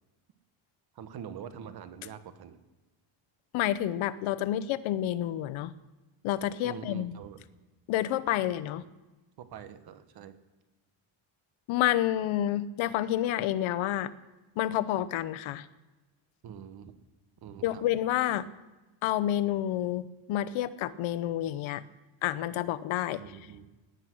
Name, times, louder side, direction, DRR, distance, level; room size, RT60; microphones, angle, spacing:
voice 1, 0.9-2.6 6.6-7.4 9.4-10.3 16.4-16.9 17.4-17.8 23.2-23.7, right 8 dB, 50° right, 11 dB, 1.2 m, -44 dB
voice 2, 3.5-5.7 6.2-7.1 7.9-8.8 11.7-14.1 14.6-15.7 17.6-18.5 19.0-21.8 22.2-23.2, left 12 dB, 75° left, 16 dB, 0.9 m, -29 dB
18.0 x 10.5 x 6.2 m, 1.1 s
cardioid pair, 175°, 48 cm